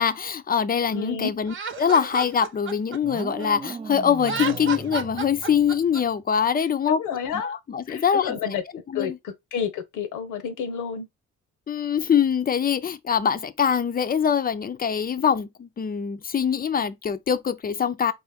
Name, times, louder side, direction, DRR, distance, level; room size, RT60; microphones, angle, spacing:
voice 1, 0.0-7.0 7.3-8.4 8.9-9.2 11.7-18.1, left 7 dB, 30° left, 0.5 m, -23 dB
voice 2, 0.9-1.3 6.9-7.6 7.9-11.1, left 7 dB, 85° left, 0.9 m, -30 dB
Laughter, 1.5-3.7 4.2-6.0, right 5 dB, 40° right, 0.8 m, -32 dB
sound 1, 3.0-6.2, right 5 dB, 20° right, 0.4 m, -38 dB
4.3 x 2.5 x 3.5 m
cardioid pair, 90°, 30 cm